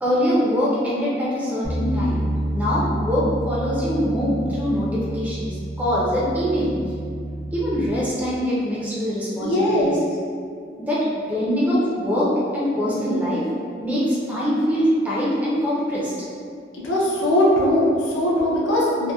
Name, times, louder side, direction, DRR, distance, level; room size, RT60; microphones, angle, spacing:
voice 1, 0.0-2.2 2.5-6.7 7.5-10.0 10.8-13.5 13.8-16.1, equal, 10° right, -8 dB, 0.4 m, -23 dB
Bass guitar, 1.6-7.9, right 1 dB, 45° right, 0.6 m, -28 dB
voice 2, 9.4-9.9 16.8-19.1, left 1 dB, 85° left, -5 dB, 0.5 m, -20 dB
2.7 x 2.0 x 2.2 m, 2.3 s
head